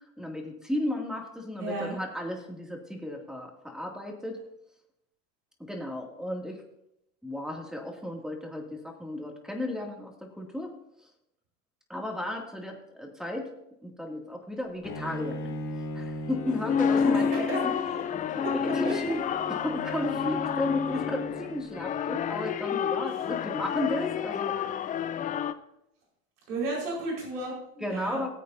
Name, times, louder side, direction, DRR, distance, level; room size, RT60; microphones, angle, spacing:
voice 1, 0.2-4.4 5.6-6.6 7.2-10.7 11.9-13.5 13.8-15.5 15.9-17.8 18.3-24.5 24.9-25.4 27.8-28.3, left 1 dB, ahead, 1 dB, 2.3 m, -34 dB
voice 2, 1.6-2.0 17.1-17.6 17.9-18.0 18.4-18.5 18.8-18.9 26.5-28.2, right 2 dB, 75° right, -3 dB, 4.7 m, -33 dB
Bowed string instrument, 14.8-21.9, left 1 dB, 40° left, 2.5 m, -39 dB
sound 1, 16.5-25.5, left 7 dB, 20° left, 0.4 m, -29 dB
19.5 x 8.2 x 2.7 m, 0.80 s
hypercardioid pair, 85°, 46 cm